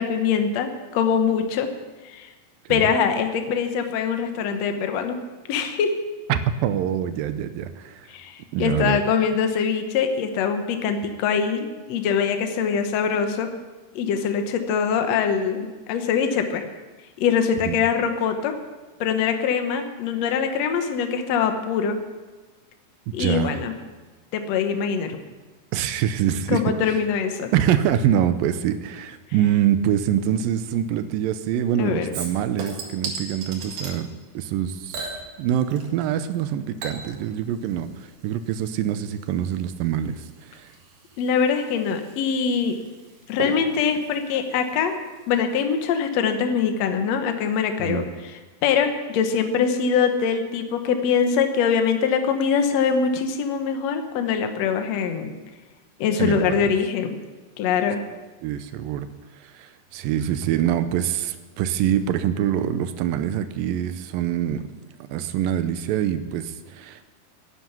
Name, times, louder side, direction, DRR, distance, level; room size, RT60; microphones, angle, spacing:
voice 1, 0.0-1.7 2.0-2.3 2.7-5.2 5.5-5.9 8.1-13.5 13.9-16.7 17.2-18.5 19.0-22.0 23.1-23.7 24.3-25.2 26.5-27.5 31.8-32.1 41.2-42.8 43.3-44.9 45.3-55.3 56.0-57.2 57.6-58.0, left 6 dB, 90° left, 6 dB, 1.5 m, -23 dB
voice 2, 6.3-8.1 8.5-9.0 17.7-17.8 23.1-23.6 25.7-27.0 27.5-40.7 47.8-48.1 56.2-56.7 58.4-59.1 59.4-64.6 65.1-67.0, right 10 dB, 80° right, 11 dB, 2.1 m, -25 dB
Chink clink / Liquid, 32.1-34.0 34.9-36.1 36.3-45.4 45.7-45.8, right 3 dB, 65° right, 3.7 m, -38 dB
11.5 x 10.0 x 9.2 m, 1.3 s
omnidirectional pair, 4.6 m